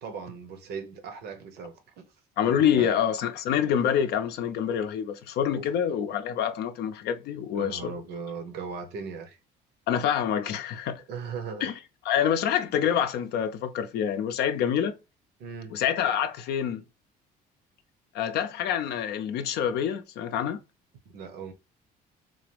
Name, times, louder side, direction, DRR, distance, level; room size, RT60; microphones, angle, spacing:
voice 1, 0.0-2.0 2.4-2.9 5.5-5.6 7.5-9.4 11.1-11.7 15.4-15.8 21.1-21.5, right 5 dB, 75° right, 0.9 m, -38 dB
voice 2, 2.4-7.9 9.9-11.0 11.6-11.7 12.0-14.9 15.7-16.8 18.1-20.6, left 9 dB, 75° left, 0.5 m, -26 dB
3.8 x 2.5 x 3.3 m
cardioid pair, 110°, 17 cm